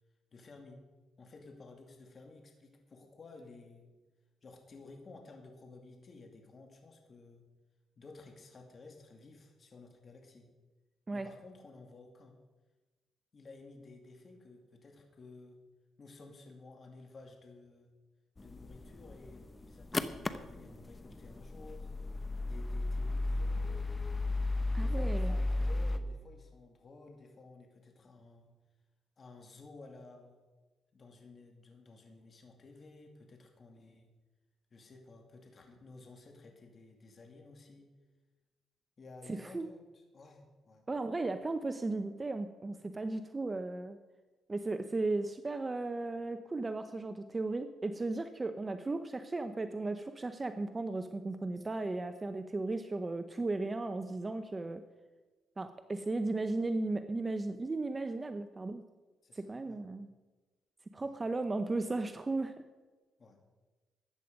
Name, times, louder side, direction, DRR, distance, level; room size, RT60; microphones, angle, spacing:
voice 1, 0.3-0.8 1.2-3.9 4.4-7.4 8.0-10.5 11.1-12.4 13.3-15.6 16.0-17.9 18.4-21.9 22.4-24.0 24.7-28.5 29.2-30.4 30.9-34.1 34.7-37.9 39.0-40.8 59.2-59.8 61.0-61.2 63.2-63.4, left 3 dB, 40° left, 3 dB, 2.4 m, -54 dB
sound 1, 18.4-26.0, left 2 dB, 20° left, 0.8 m, -34 dB
voice 2, 24.7-25.3 39.3-39.7 40.9-44.0 44.5-54.8 55.6-58.8 59.4-60.1 60.9-62.6, right 2 dB, 25° right, 9 dB, 0.7 m, -35 dB
13.5 x 9.5 x 5.3 m, 1.2 s
cardioid pair, 90°, 0 cm